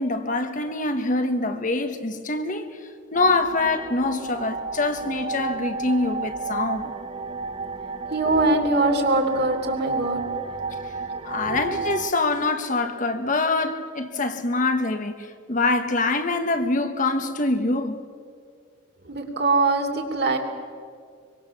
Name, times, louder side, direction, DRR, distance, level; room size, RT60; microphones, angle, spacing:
voice 1, 0.0-2.8 3.1-6.9 11.2-18.0, left 2 dB, 45° left, 1.5 m, -25 dB
sound 1, 3.1-12.1, right 4 dB, 30° right, 0.7 m, -32 dB
voice 2, 8.1-10.2 11.5-11.6 19.1-20.4, right 2 dB, 60° right, 3.3 m, -22 dB
25.0 x 24.5 x 7.3 m
head